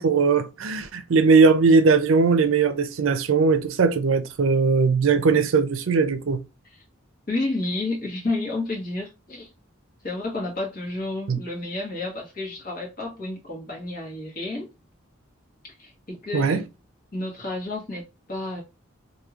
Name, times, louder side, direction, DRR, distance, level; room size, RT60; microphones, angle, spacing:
voice 1, 0.0-6.4 11.3-11.4 16.3-16.6, right 4 dB, 80° right, 0.5 m, -19 dB
voice 2, 7.3-9.5 10.0-14.7 15.6-16.6 17.1-18.6, left 2 dB, 45° left, 1.2 m, -30 dB
3.0 x 2.7 x 2.3 m
head